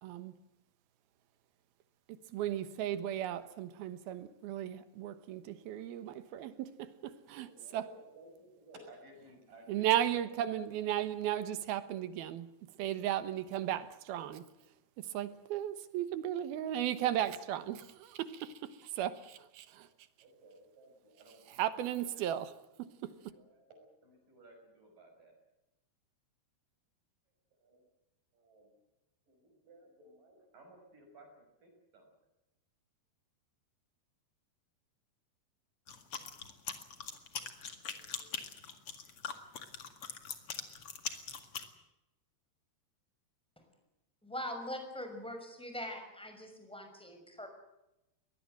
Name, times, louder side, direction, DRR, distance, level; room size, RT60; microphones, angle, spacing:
voice 1, 0.0-0.4 2.1-7.9 9.7-12.5 12.8-14.5 15.0-19.9 21.5-23.3, right 11 dB, 75° right, 3.0 m, -36 dB
voice 2, 7.5-9.9 10.4-10.5 19.6-19.9 20.2-21.7 22.0-22.1 23.0-25.3 27.6-27.8 28.3-28.7 29.3-32.1 37.7-38.4, right 1 dB, 55° right, 7.4 m, -58 dB
sound 1, 35.9-41.7, left 6 dB, 45° left, 2.2 m, -42 dB
voice 3, 44.2-47.5, left 1 dB, ahead, 5.4 m, -42 dB
23.0 x 19.5 x 7.8 m
omnidirectional pair, 4.6 m